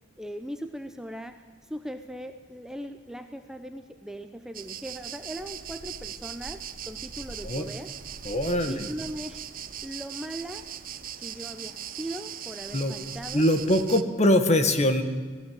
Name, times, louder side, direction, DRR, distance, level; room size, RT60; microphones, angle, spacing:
voice 1, 0.2-1.4 1.6-7.9 8.6-9.4 9.8-10.6 11.2-13.4, equal, 5° right, 7 dB, 0.9 m, -39 dB
sound 1, 4.5-14.0, right 9 dB, 45° right, 1.0 m, -39 dB
voice 2, 8.2-8.9 12.7-12.9 13.3-15.0, left 1 dB, 35° left, 8 dB, 1.9 m, -23 dB
26.5 x 18.0 x 7.9 m, 1.4 s
head